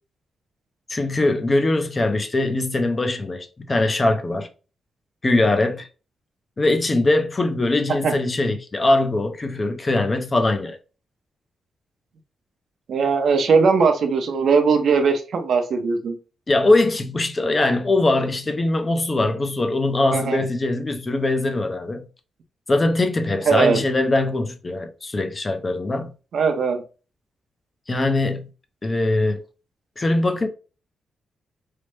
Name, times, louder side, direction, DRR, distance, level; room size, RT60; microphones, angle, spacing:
voice 1, 0.9-4.5 5.2-5.9 6.6-10.8 16.5-22.1 22.7-26.1 27.9-28.5 28.8-29.4 30.0-30.5, left 2 dB, 25° left, 0.4 m, -21 dB
voice 2, 12.9-16.2 20.1-20.5 23.5-23.8 26.3-26.8, right 5 dB, 65° right, 0.6 m, -19 dB
3.2 x 2.0 x 3.1 m
wide cardioid pair, 125°, 0 cm